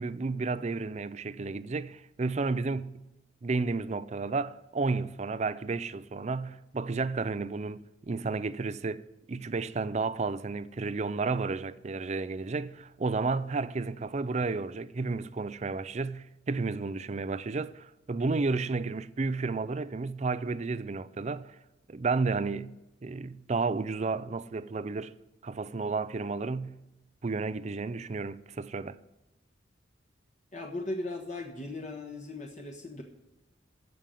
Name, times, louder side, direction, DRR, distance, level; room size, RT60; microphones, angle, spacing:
voice 1, 0.0-3.0 3.4-21.5 21.9-22.7 23.0-25.1 25.4-26.8 27.2-29.0, right 3 dB, 35° right, 0.4 m, -32 dB
voice 2, 30.5-33.0, left 2 dB, 40° left, 1.4 m, -37 dB
14.5 x 5.3 x 9.0 m
head